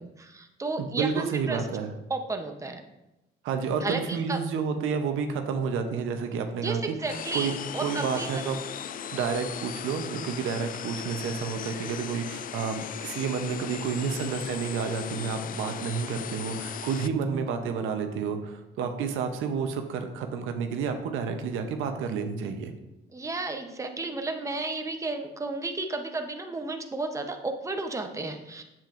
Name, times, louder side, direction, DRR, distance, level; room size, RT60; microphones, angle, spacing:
voice 1, 0.0-1.6 2.1-2.8 3.8-4.4 6.6-8.4 23.1-28.6, right 3 dB, 15° right, 5 dB, 0.8 m, -33 dB
voice 2, 0.8-1.9 3.4-7.5 7.8-8.6 9.1-22.7, right 6 dB, 90° right, 6 dB, 0.8 m, -30 dB
sound 1, 7.1-17.1, left 9 dB, 45° left, 0.4 m, -37 dB
7.5 x 7.4 x 2.6 m, 0.95 s
cardioid pair, 90°, 20 cm